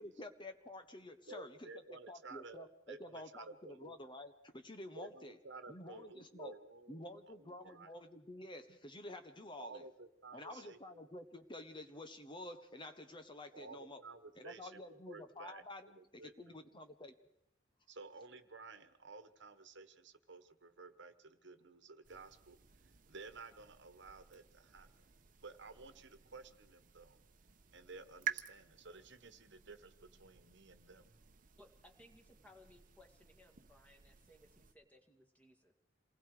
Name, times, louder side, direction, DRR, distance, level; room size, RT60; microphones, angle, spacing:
voice 1, 0.0-5.4 5.7-6.5 6.9-9.9 10.3-14.0 14.4-17.2, left 1 dB, 25° left, 8 dB, 1.1 m, -50 dB
voice 2, 1.3-4.0 4.9-7.9 9.6-11.1 13.5-15.6 16.0-16.6 17.9-22.6 23.1-24.9 25.4-27.2 27.7-31.1, right 3 dB, 65° right, 10 dB, 1.4 m, -54 dB
sound 1, 22.0-34.7, right 9 dB, 45° right, 1.0 m, -51 dB
voice 3, 31.6-35.7, left 1 dB, 10° left, 2 dB, 2.2 m, -63 dB
27.5 x 20.0 x 4.9 m, 0.78 s
head